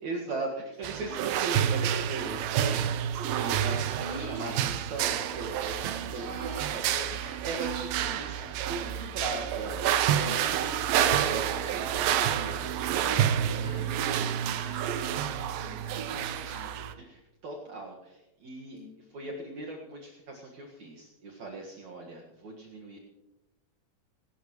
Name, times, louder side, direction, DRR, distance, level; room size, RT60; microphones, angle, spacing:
voice 1, 0.0-10.6 13.0-13.7 15.8-18.8 19.1-23.0, right 3 dB, 60° right, -2 dB, 2.9 m, -39 dB
sound 1, 0.8-16.9, right 10 dB, 85° right, 2.5 m, -29 dB
voice 2, 4.0-4.7 6.1-7.1 9.1-9.7 10.2-12.6 13.0-16.7 18.7-18.9, right 1 dB, 5° right, -3 dB, 5.9 m, -45 dB
28.0 x 14.0 x 3.1 m, 0.99 s
omnidirectional pair, 4.0 m